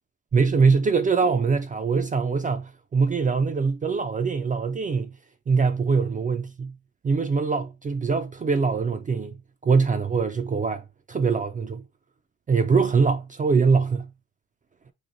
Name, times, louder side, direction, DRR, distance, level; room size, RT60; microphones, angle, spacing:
voice 1, 0.3-5.2 5.5-6.8 7.0-9.4 9.6-10.8 11.1-11.8 12.5-14.1, right 5 dB, 25° right, 0.4 m, -23 dB
3.2 x 2.5 x 3.8 m
cardioid pair, 90°, 30 cm